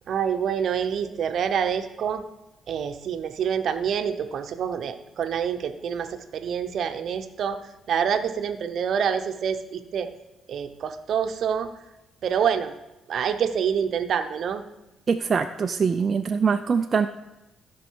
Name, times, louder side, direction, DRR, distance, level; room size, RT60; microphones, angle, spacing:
voice 1, 0.1-2.2 2.7-10.1 10.5-11.7 12.2-12.7 13.1-14.6, right 7 dB, 65° right, 9 dB, 0.8 m, -27 dB
voice 2, 15.1-17.1, right 5 dB, 40° right, 6 dB, 0.4 m, -23 dB
15.5 x 5.2 x 4.6 m, 0.98 s
cardioid pair, 90°, 0 cm